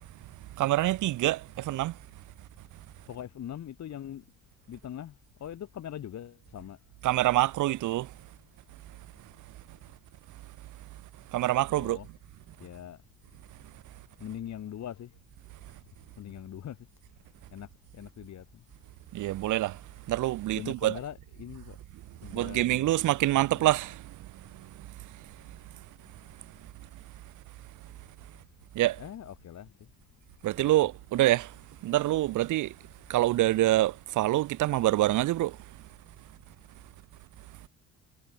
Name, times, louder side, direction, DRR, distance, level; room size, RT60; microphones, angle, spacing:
voice 1, 0.6-1.9 7.0-8.1 11.3-12.0 19.1-19.8 20.1-21.0 22.3-24.0 28.8-29.0 30.4-31.5 31.8-32.7 33.1-35.5, right 15 dB, 80° right, 1.1 m, -25 dB
voice 2, 3.1-4.2 4.7-6.8 11.7-12.1 12.6-13.0 14.2-15.2 15.7-15.8 16.2-16.8 17.5-18.6 20.5-21.8 22.2-22.9 23.5-23.7 29.0-29.9 30.6-30.7, left 10 dB, 65° left, 3.9 m, -42 dB
cardioid pair, 90°, 30 cm